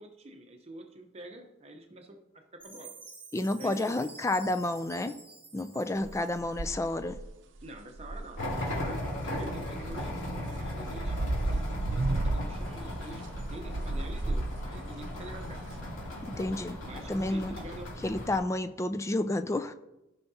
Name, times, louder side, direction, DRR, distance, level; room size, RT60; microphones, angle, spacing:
voice 1, 0.0-2.2 2.6-2.9 3.6-4.2 7.6-11.2 11.4-13.2 13.5-15.6 16.8-17.9, right 1 dB, 30° right, 0.8 m, -46 dB
Chime, 2.6-6.9, right 4 dB, 10° right, 2.4 m, -50 dB
voice 2, 3.3-5.2 5.5-7.2 16.2-16.8 17.1-17.5 18.0-19.7, left 2 dB, 15° left, 0.3 m, -30 dB
sound 1, 6.0-6.1 6.4-7.3 7.6-9.0 9.8-15.8, right 2 dB, 75° right, 0.6 m, -33 dB
sound 2, 8.4-18.4, left 1 dB, 85° left, 2.8 m, -37 dB
15.0 x 5.7 x 2.8 m
head